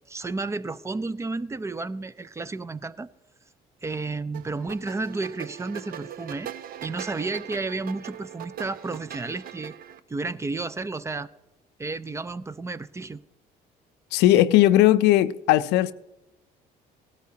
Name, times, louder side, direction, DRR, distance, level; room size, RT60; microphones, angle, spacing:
voice 1, 0.1-3.1 3.8-6.5 6.8-9.8 10.1-11.3 11.8-13.2, right 3 dB, 15° right, 0.4 m, -32 dB
sound 1, 4.3-10.0, right 10 dB, 60° right, 0.6 m, -40 dB
voice 2, 14.1-15.9, left 14 dB, 90° left, 0.5 m, -18 dB
17.5 x 12.5 x 2.8 m
cardioid pair, 110°, 17 cm